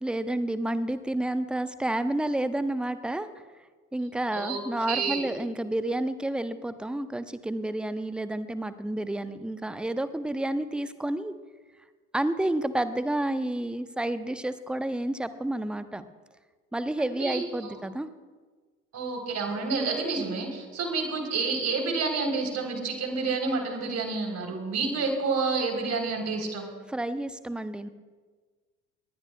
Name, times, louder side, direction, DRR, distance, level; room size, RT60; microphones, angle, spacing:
voice 1, 0.0-3.3 3.9-11.3 12.1-16.0 16.7-18.1 26.9-27.9, right 1 dB, ahead, 12 dB, 0.7 m, -30 dB
voice 2, 4.3-5.2 17.0-17.7 18.9-26.7, right 4 dB, 35° right, 3 dB, 3.8 m, -29 dB
20.5 x 19.0 x 2.3 m, 1.4 s
figure-of-eight pair, 65°, 44 cm